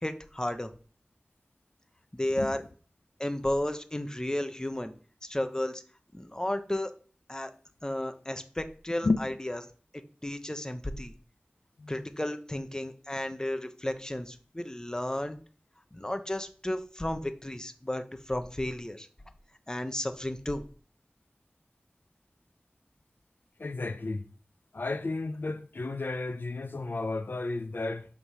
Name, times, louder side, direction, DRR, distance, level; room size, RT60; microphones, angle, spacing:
voice 1, 0.0-0.7 2.1-2.6 3.2-4.9 5.2-5.8 6.1-6.9 7.3-7.5 7.8-9.6 10.2-11.1 11.9-15.4 15.9-19.1 19.7-20.6, left 1 dB, 20° left, 1.0 m, -33 dB
voice 2, 23.6-24.3 24.7-28.1, left 3 dB, 75° left, 0.8 m, -32 dB
9.9 x 3.9 x 6.2 m
wide cardioid pair, 60°, 4 cm